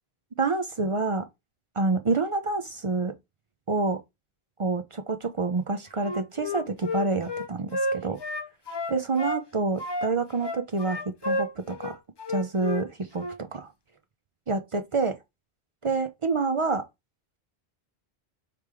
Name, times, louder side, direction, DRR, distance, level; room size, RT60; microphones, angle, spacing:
voice 1, 0.4-1.2 1.8-3.1 3.7-4.0 4.6-8.2 8.9-12.0 12.3-13.7 14.5-15.2 15.8-16.8, right 3 dB, 45° right, 0.4 m, -27 dB
Wind instrument woodwind instrument, 6.0-9.4 9.8-12.9 13.2-13.4, left 1 dB, 35° left, 0.5 m, -31 dB
4.8 x 3.4 x 3.3 m
omnidirectional pair, 1.1 m